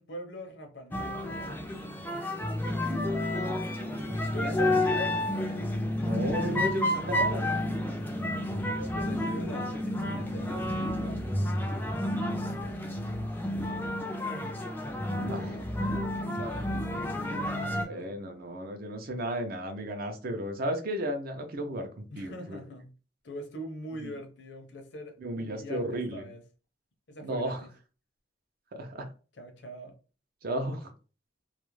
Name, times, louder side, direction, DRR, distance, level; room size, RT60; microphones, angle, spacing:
voice 1, 0.0-1.9 2.8-3.2 4.3-5.2 5.8-7.3 8.6-11.5 15.3-15.7 16.2-18.2 22.1-22.9 23.2-26.4 27.1-27.7 29.3-30.0, equal, 60° left, 0.6 m, -43 dB
sound 1, 0.9-17.9, left 1 dB, 10° left, 0.3 m, -30 dB
voice 2, 4.0-4.5 6.0-7.4 15.2-15.6 17.8-22.6 24.0-24.1 25.2-26.2 27.2-27.6 28.7-29.1 30.4-30.9, right 1 dB, 50° right, 0.5 m, -34 dB
2.3 x 2.0 x 3.0 m
head